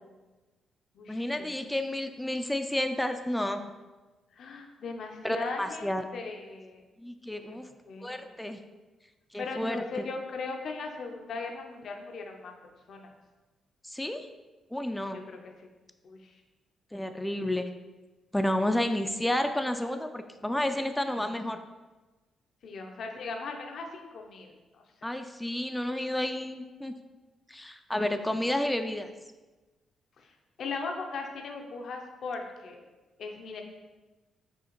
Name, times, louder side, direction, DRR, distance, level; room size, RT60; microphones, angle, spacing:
voice 1, 1.1-3.7 5.2-6.0 7.0-7.7 8.0-8.6 9.3-9.8 13.8-14.3 14.7-15.2 16.9-17.7 18.3-21.6 25.0-26.9 27.5-29.1, left 1 dB, 10° left, 7 dB, 0.3 m, -31 dB
voice 2, 4.3-6.8 7.5-7.6 7.9-8.4 9.4-12.5 12.9-13.1 15.1-15.7 16.0-16.3 22.6-24.8 30.2-32.8 33.2-33.6, left 4 dB, 65° left, 3 dB, 0.5 m, -38 dB
6.1 x 2.4 x 2.9 m, 1.2 s
hypercardioid pair, 45°, 0 cm